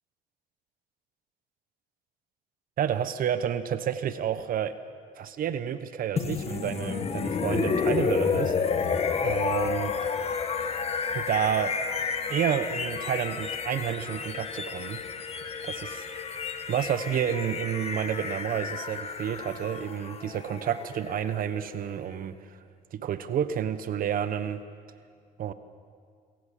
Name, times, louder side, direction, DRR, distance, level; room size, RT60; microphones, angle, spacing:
voice 1, 2.8-4.7 5.2-8.5 9.2-9.9 11.1-11.7 12.3-15.0 15.6-16.0 16.7-22.3 22.9-24.6 25.4-25.5, right 9 dB, 55° right, 12 dB, 1.1 m, -30 dB
sound 1, 6.2-22.0, left 5 dB, 35° left, 1.4 m, -31 dB
25.0 x 15.0 x 7.6 m, 2.2 s
cardioid pair, 110°, 17 cm